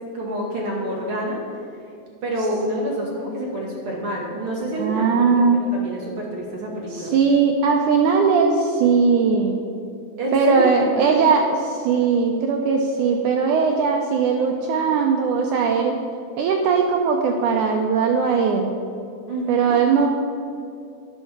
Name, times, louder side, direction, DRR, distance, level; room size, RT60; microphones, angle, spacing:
voice 1, 0.1-1.4 2.2-7.1 10.2-11.1 19.3-19.8, right 1 dB, 55° right, -3 dB, 1.6 m, -27 dB
voice 2, 4.8-5.6 6.9-9.6 10.3-16.0 16.4-18.7 19.5-20.1, right 5 dB, 85° right, 2 dB, 1.7 m, -19 dB
10.0 x 5.4 x 7.2 m, 2.5 s
omnidirectional pair, 4.3 m